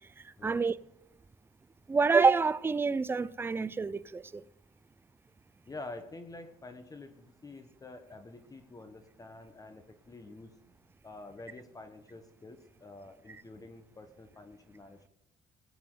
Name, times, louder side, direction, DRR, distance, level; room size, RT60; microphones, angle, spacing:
voice 1, 0.4-0.7 1.9-4.4, right 4 dB, 15° right, 0.4 m, -27 dB
voice 2, 5.7-10.5 11.0-15.1, left 2 dB, 20° left, 1.1 m, -48 dB
19.0 x 8.5 x 3.8 m
cardioid pair, 110°, 17 cm